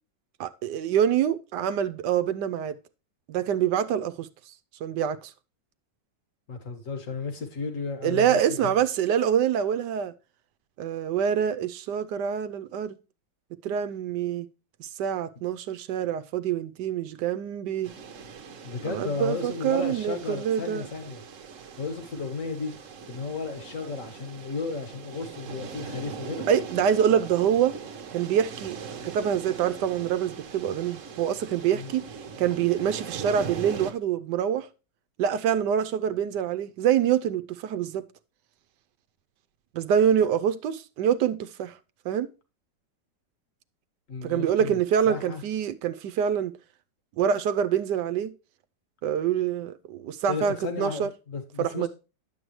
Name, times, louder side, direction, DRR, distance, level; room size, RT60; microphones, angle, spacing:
voice 1, 0.4-2.8 3.3-4.5 4.8-5.3 8.0-10.1 10.8-13.0 13.6-14.5 14.8-17.9 18.8-20.9 26.5-27.8 28.1-32.0 32.4-34.7 35.2-38.0 39.7-41.8 42.0-42.3 44.2-46.5 47.2-48.3 49.0-51.1 51.6-51.9, right 9 dB, 75° right, 1.2 m, -26 dB
voice 2, 6.5-8.7 18.6-21.2 21.8-22.7 23.1-26.5 31.7-31.9 44.1-44.8 45.1-45.4 50.3-51.9, left 4 dB, 45° left, 2.0 m, -34 dB
sound 1, 17.8-33.9, right 6 dB, 50° right, 1.2 m, -41 dB
10.5 x 7.7 x 3.1 m
omnidirectional pair, 1.9 m